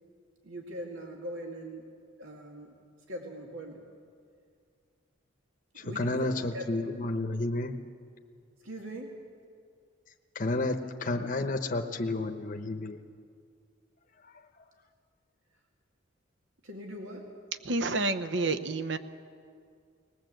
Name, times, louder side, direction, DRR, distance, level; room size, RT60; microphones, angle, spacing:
voice 1, 0.4-1.8 2.2-2.7 3.1-3.8 5.8-6.9 8.6-9.1 16.6-17.2, right 1 dB, 85° right, 1 dB, 2.2 m, -41 dB
voice 2, 5.8-7.7 10.3-13.0 14.2-14.4, left 2 dB, 40° left, 5 dB, 0.9 m, -31 dB
voice 3, 17.6-19.0, right 3 dB, 60° right, 11 dB, 0.9 m, -29 dB
20.5 x 19.0 x 7.9 m, 2.2 s
head